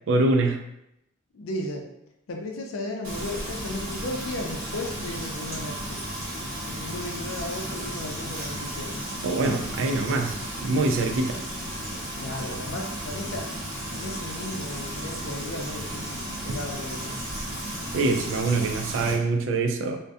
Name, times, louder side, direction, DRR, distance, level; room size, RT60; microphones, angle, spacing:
voice 1, 0.1-0.6 9.2-11.4 17.9-20.0, right 3 dB, 65° right, 5 dB, 0.3 m, -24 dB
voice 2, 1.3-1.9 2.3-6.0 6.6-9.0 12.2-13.5 13.9-17.3, left 1 dB, 80° left, 2 dB, 0.5 m, -35 dB
Frying (food), 3.0-19.1, right 1 dB, 90° right, 1.0 m, -34 dB
2.6 x 2.1 x 2.3 m, 0.81 s
head